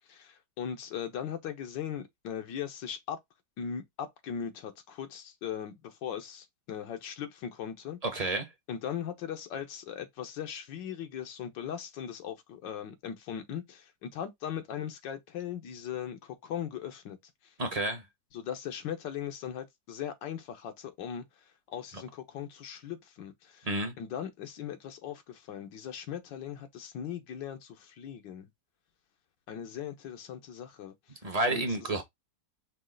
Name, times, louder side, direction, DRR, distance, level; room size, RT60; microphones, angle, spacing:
voice 1, 0.0-3.2 3.6-8.0 8.7-17.2 18.3-21.2 21.7-23.7 24.0-28.5 29.5-30.9 31.5-31.6, left 9 dB, 90° left, 1.6 m, -39 dB
voice 2, 8.0-8.5 17.6-18.0 21.9-22.0 23.6-23.9 31.2-32.0, right 2 dB, 40° right, 0.5 m, -30 dB
5.3 x 2.3 x 3.7 m
omnidirectional pair, 1.9 m